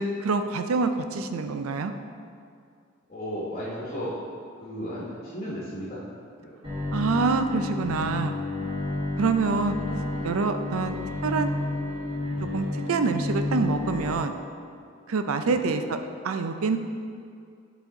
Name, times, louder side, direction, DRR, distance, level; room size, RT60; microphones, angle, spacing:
voice 1, 0.0-1.9 6.9-8.3 9.2-9.8 10.2-11.0 11.2-11.5 12.5-14.3 15.1-16.0 16.2-16.8, right 4 dB, 90° right, 8 dB, 0.5 m, -26 dB
voice 2, 3.1-4.2 4.6-6.0 6.4-6.9 9.4-9.5 10.8-11.0 15.4-15.7, equal, 35° left, -7 dB, 1.2 m, -35 dB
Bowed string instrument, 6.6-14.1, left 2 dB, 20° right, 1.6 m, -31 dB
8.4 x 4.1 x 3.9 m, 2.3 s
head